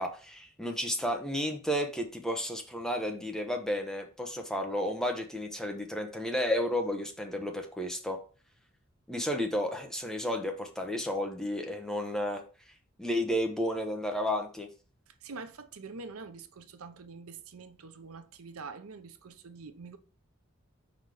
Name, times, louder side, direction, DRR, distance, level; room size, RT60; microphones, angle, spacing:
voice 1, 0.0-8.2 9.1-12.4 13.0-14.7, equal, ahead, 0.8 m, -32 dB
voice 2, 15.1-20.0, right 4 dB, 80° right, 0.7 m, -45 dB
5.3 x 4.1 x 4.7 m
head